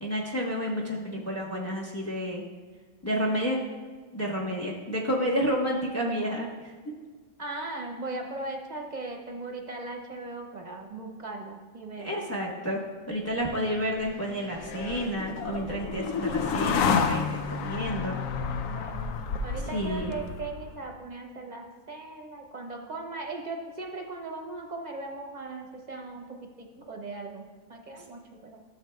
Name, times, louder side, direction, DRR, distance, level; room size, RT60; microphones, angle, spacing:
voice 1, 0.0-2.4 3.0-3.6 4.1-6.7 12.0-12.8 13.1-18.2 19.7-20.1, equal, 10° left, -2 dB, 1.1 m, -30 dB
voice 2, 7.4-12.3 16.3-17.0 18.7-19.1 19.4-28.6, right 3 dB, 40° right, 1 dB, 0.9 m, -39 dB
sound 1, 13.4-20.8, left 6 dB, 85° left, 1.0 m, -31 dB
13.5 x 7.1 x 2.3 m, 1.5 s
omnidirectional pair, 1.4 m